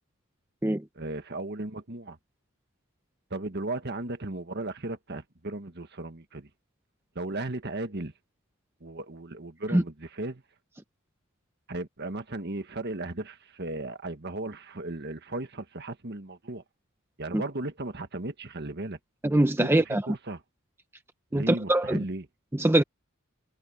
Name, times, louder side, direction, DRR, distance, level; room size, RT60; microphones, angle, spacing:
voice 1, 1.0-2.2 3.3-6.5 7.2-8.1 8.8-10.4 11.7-16.6 17.2-19.0 19.6-20.4 21.3-22.3, right 2 dB, 50° right, 1.6 m, -36 dB
voice 2, 19.2-20.0 21.3-22.0 22.5-22.8, right 1 dB, 10° right, 0.6 m, -23 dB
head